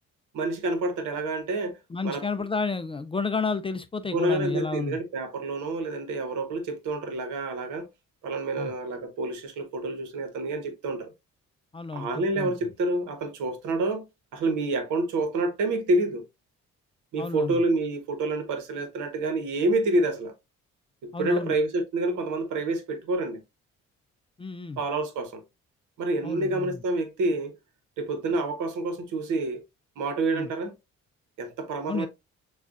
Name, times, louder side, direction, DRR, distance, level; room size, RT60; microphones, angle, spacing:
voice 1, 0.3-1.8 2.0-2.3 4.1-7.9 8.2-11.1 11.9-14.0 14.3-16.2 17.1-20.3 21.0-23.4 24.8-25.4 26.0-27.6 28.0-29.6 30.0-30.7 31.4-32.1, right 2 dB, 80° right, 1.1 m, -28 dB
voice 2, 1.9-5.0 8.6-8.7 11.7-12.5 17.2-17.6 21.1-21.5 24.4-24.8 26.2-26.8 30.3-30.5 31.9-32.1, left 4 dB, 20° left, 0.3 m, -31 dB
6.5 x 2.4 x 2.4 m
cardioid pair, 90°, 30 cm